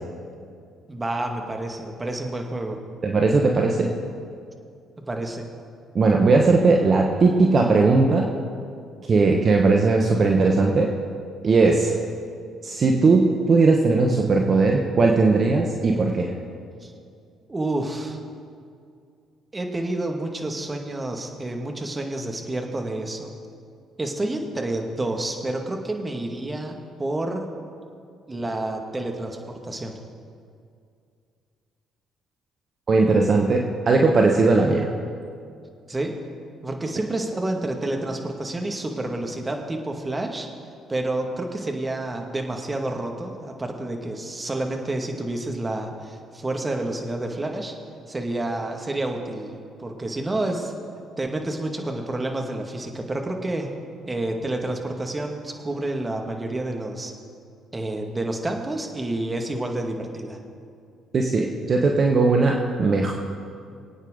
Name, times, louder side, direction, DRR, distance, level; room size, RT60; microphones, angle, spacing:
voice 1, 0.9-2.8 5.0-5.4 16.8-16.9 17.5-18.2 19.5-23.3 24.0-27.5 28.3-29.9 35.9-36.1 36.6-40.5 40.9-47.7 48.1-50.7 51.2-53.7 54.1-57.1 57.7-60.4, right 2 dB, 25° right, 3 dB, 2.1 m, -29 dB
voice 2, 3.0-3.9 5.9-8.3 9.1-10.9 11.4-11.9 12.6-16.3 32.9-34.9 61.1-63.1, right 3 dB, 45° right, 1 dB, 1.3 m, -18 dB
24.0 x 9.0 x 3.9 m, 2.3 s
hypercardioid pair, 50°, 0 cm